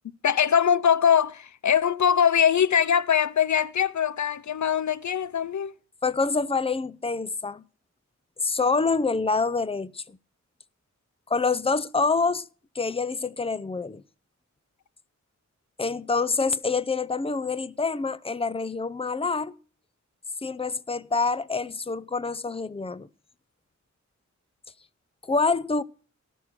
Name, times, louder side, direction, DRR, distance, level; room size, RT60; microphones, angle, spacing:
voice 1, 0.2-5.7, left 8 dB, 70° left, 0.5 m, -22 dB
voice 2, 6.0-7.6 8.4-10.2 11.3-12.5 12.7-14.0 15.8-19.5 20.4-23.1 25.3-25.8, left 4 dB, 20° left, 0.6 m, -26 dB
17.5 x 6.4 x 5.8 m
wide cardioid pair, 90°, 30 cm